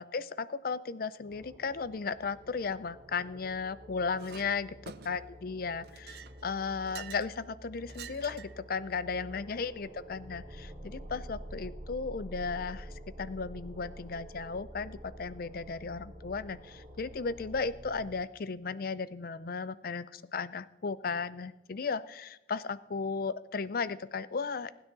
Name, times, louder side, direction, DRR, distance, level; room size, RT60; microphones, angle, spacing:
voice 1, 0.0-24.7, left 5 dB, 50° left, 17 dB, 0.5 m, -35 dB
sound 1, 1.3-18.1, equal, 25° right, 4.8 m, -48 dB
Chink clink, 4.2-4.5 4.9-5.4 5.8-7.3 7.9-8.6, right 8 dB, 55° right, 0.6 m, -48 dB
21.5 x 9.8 x 3.9 m, 1.0 s
head